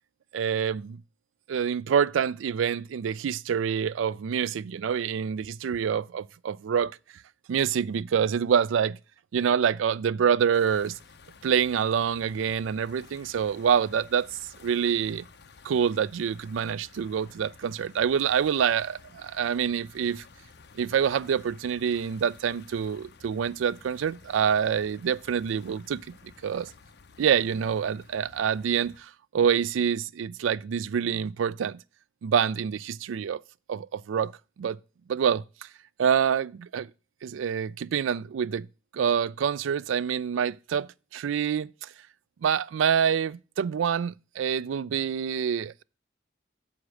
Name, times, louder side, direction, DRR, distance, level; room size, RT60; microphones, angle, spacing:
voice 1, 0.3-1.0 1.5-7.0 7.5-9.0 9.3-11.0 11.4-14.3 14.6-15.2 15.6-20.2 20.7-26.0 26.4-26.7 27.2-31.8 32.2-33.4 33.7-34.3 34.6-34.8 35.1-35.7 36.0-36.9 37.2-38.7 38.9-41.9 42.4-45.8, right 7 dB, 85° right, 0.3 m, -26 dB
sound 1, 10.5-29.0, left 4 dB, 55° left, 0.7 m, -53 dB
7.2 x 4.9 x 6.1 m
head